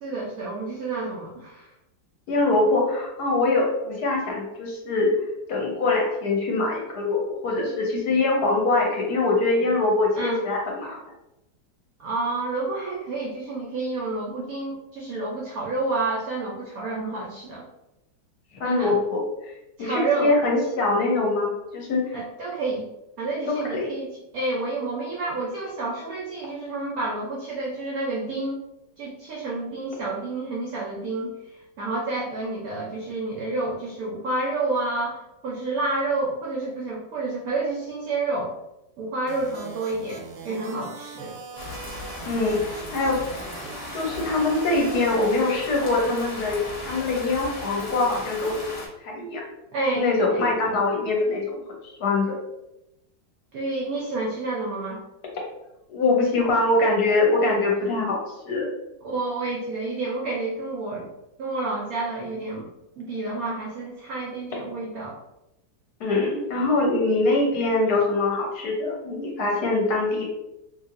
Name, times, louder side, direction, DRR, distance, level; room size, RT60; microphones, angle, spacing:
voice 1, 0.0-1.7 10.2-10.4 12.0-17.7 18.6-19.0 19.8-20.4 22.1-22.9 23.2-28.6 29.0-31.3 31.8-38.5 39.0-41.4 49.7-50.5 53.5-55.0 59.0-61.1 61.4-62.7 63.0-65.2, right 2 dB, 70° right, -4 dB, 0.9 m, -29 dB
voice 2, 2.3-5.1 5.5-11.0 18.5-19.5 19.8-22.1 23.5-23.9 42.3-43.2 43.9-48.6 49.0-49.4 50.0-51.4 51.8-52.4 55.9-58.2 58.4-58.7 66.0-70.3, left 2 dB, 65° left, -1 dB, 1.1 m, -23 dB
sound 1, 39.3-45.1, right 5 dB, 90° right, 1.3 m, -41 dB
sound 2, 41.6-48.9, left 2 dB, 50° left, 0.9 m, -37 dB
3.1 x 2.8 x 2.4 m, 0.91 s
omnidirectional pair, 2.0 m